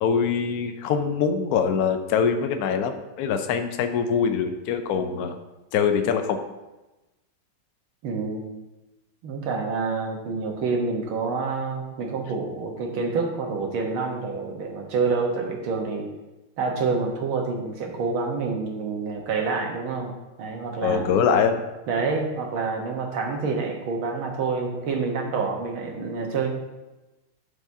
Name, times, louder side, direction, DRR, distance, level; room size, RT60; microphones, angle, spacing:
voice 1, 0.0-5.4 5.7-6.4 20.8-21.6, left 6 dB, 75° left, 6 dB, 0.8 m, -23 dB
voice 2, 8.0-8.5 9.2-16.1 16.6-20.1 20.4-21.1 21.9-26.5, right 4 dB, 80° right, 2 dB, 1.9 m, -27 dB
12.5 x 4.9 x 2.7 m, 1.1 s
omnidirectional pair, 2.3 m